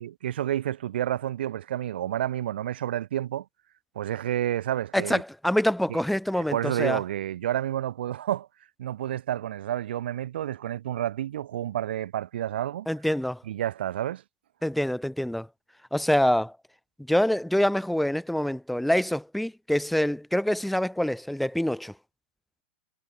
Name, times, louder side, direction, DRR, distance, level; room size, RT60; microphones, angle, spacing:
voice 1, 0.0-3.5 3.9-5.2 5.9-6.0 6.3-8.5 8.8-12.9 13.5-14.2, right 12 dB, 70° right, 3.0 m, -30 dB
voice 2, 4.9-7.0 12.9-13.4 14.6-15.5 15.9-16.5 17.1-21.9, left 1 dB, ahead, 1.3 m, -25 dB
supercardioid pair, 160°, 6 cm